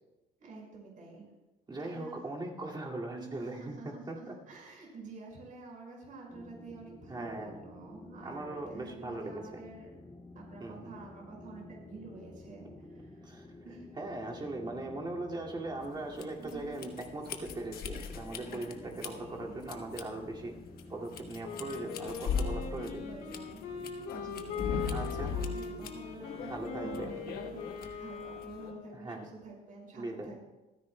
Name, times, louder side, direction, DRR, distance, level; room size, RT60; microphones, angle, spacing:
voice 1, 0.4-1.3 1.8-2.2 3.2-9.9 10.3-13.3 13.6-14.0 16.4-16.8 18.5-19.6 23.0-23.6 24.1-27.7 28.0-30.4, right 3 dB, 50° right, -2 dB, 5.3 m, -48 dB
voice 2, 1.7-4.4 7.1-7.6 8.2-9.4 10.6-11.0 13.2-13.5 14.0-20.6 20.9-23.0 24.9-25.3 26.3-27.2 27.8-28.0 28.9-29.3 29.9-30.3, right 2 dB, 25° right, -2 dB, 2.2 m, -40 dB
sound 1, 6.3-25.8, left 2 dB, 20° left, 2.2 m, -51 dB
sound 2, 15.8-28.7, left 6 dB, 65° left, 1.2 m, -40 dB
Wind instrument woodwind instrument, 21.4-29.1, left 6 dB, 85° left, 2.5 m, -41 dB
27.5 x 10.0 x 2.2 m, 1.1 s
cardioid pair, 110°, 17 cm